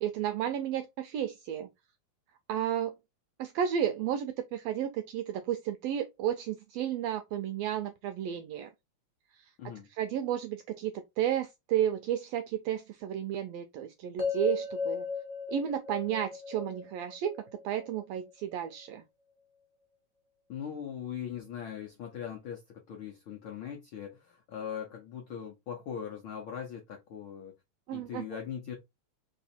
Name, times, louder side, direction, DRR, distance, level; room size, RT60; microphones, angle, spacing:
voice 1, 0.0-1.7 2.5-2.9 3.4-8.7 9.3-9.5 9.9-15.1 15.5-19.0 27.9-28.2, right 10 dB, 80° right, 1.5 m, -32 dB
sound 1, 14.2-18.3, left 5 dB, 45° right, 0.4 m, -36 dB
voice 2, 20.5-22.6 22.9-27.5 27.9-28.8, left 8 dB, 80° left, 1.1 m, -40 dB
4.1 x 3.2 x 4.1 m
omnidirectional pair, 3.4 m